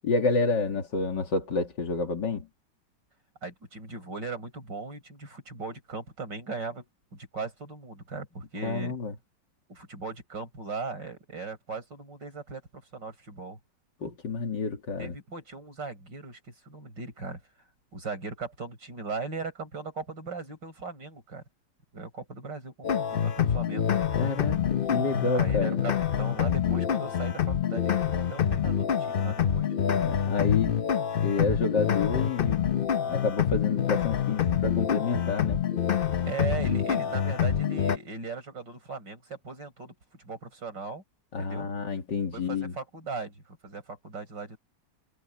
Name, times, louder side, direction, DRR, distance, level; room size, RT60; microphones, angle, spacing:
voice 1, 0.0-2.5 8.6-9.1 14.0-15.2 24.1-25.8 30.0-30.9 31.2-32.7 33.1-35.6 41.3-42.8, left 4 dB, 80° left, 2.9 m, -29 dB
voice 2, 3.4-8.9 9.7-13.6 15.0-17.4 17.9-21.4 21.9-23.9 25.3-29.7 36.3-41.0 41.4-41.7 42.3-44.6, right 4 dB, 85° right, 7.0 m, -38 dB
sound 1, 22.8-38.0, left 8 dB, 50° left, 0.6 m, -26 dB
omnidirectional pair, 1.9 m